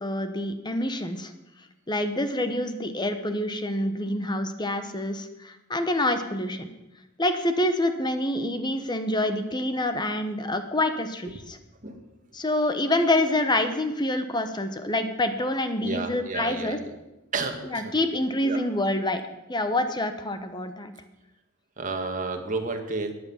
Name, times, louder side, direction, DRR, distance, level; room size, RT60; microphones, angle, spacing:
voice 1, 0.0-1.3 1.9-6.7 7.2-11.6 12.3-16.8 17.7-19.2 19.5-20.9, left 1 dB, 20° left, 8 dB, 1.1 m, -27 dB
voice 2, 15.8-16.9 17.3-17.9 18.4-18.6 21.8-23.1, right 3 dB, 40° right, 5 dB, 1.7 m, -31 dB
14.0 x 9.9 x 7.2 m, 0.96 s
head